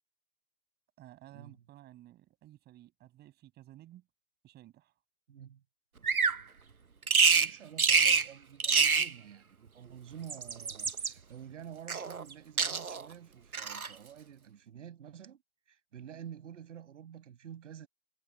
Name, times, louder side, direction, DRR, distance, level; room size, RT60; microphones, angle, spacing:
voice 1, 1.0-4.1 4.4-4.9, right 14 dB, 25° right, 7.6 m, -54 dB
voice 2, 5.3-5.6 7.3-17.9, right 9 dB, 60° right, 7.7 m, -49 dB
Bird vocalization bird call bird song, 6.0-6.4 7.1-7.5 7.8-8.3 8.6-9.1 10.1-11.1 11.9-12.3 12.6-13.1 13.5-13.9, right 5 dB, 90° right, 1.2 m, -26 dB
figure-of-eight pair, 120°, 42 cm